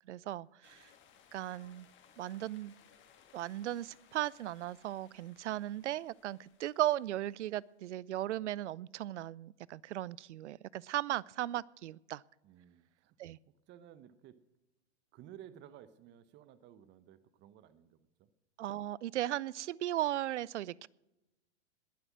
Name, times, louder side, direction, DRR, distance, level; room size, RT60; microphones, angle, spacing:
voice 1, 0.1-0.9 1.3-1.9 2.2-2.7 3.3-12.2 13.2-13.4 18.6-20.9, right 13 dB, 85° right, 25 dB, 0.5 m, -37 dB
sound 1, 0.6-7.8, left 8 dB, 35° left, 2.3 m, -64 dB
voice 2, 12.4-13.2 13.7-14.4 15.1-18.3, right 10 dB, 35° right, 15 dB, 0.9 m, -55 dB
20.5 x 7.9 x 6.0 m, 0.97 s
hypercardioid pair, 115°, 34 cm